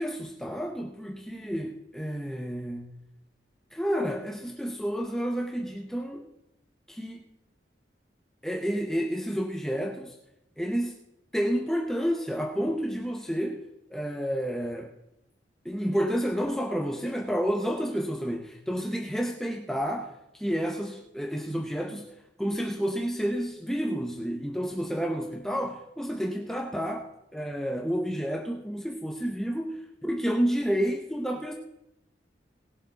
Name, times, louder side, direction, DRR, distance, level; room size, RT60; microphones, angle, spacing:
voice 1, 0.0-2.9 3.7-6.3 6.9-7.2 8.4-10.2 10.6-11.0 11.3-13.6 13.9-14.9 15.6-22.1 22.4-31.5, equal, 5° left, 1 dB, 0.6 m, -30 dB
19.0 x 7.5 x 3.9 m, 0.89 s
head